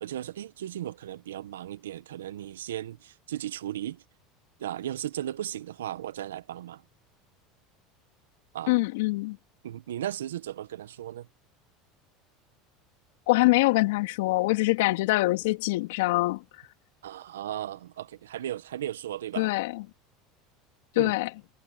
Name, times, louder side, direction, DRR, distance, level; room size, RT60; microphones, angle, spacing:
voice 1, 0.0-4.0 4.6-6.8 8.5-8.7 9.6-11.3 17.0-19.5 20.9-21.1, right 12 dB, 85° right, 1.5 m, -36 dB
voice 2, 8.7-9.4 13.3-16.4 19.4-19.8 20.9-21.3, left 21 dB, 75° left, 3.0 m, -24 dB
hypercardioid pair, 85°, 0 cm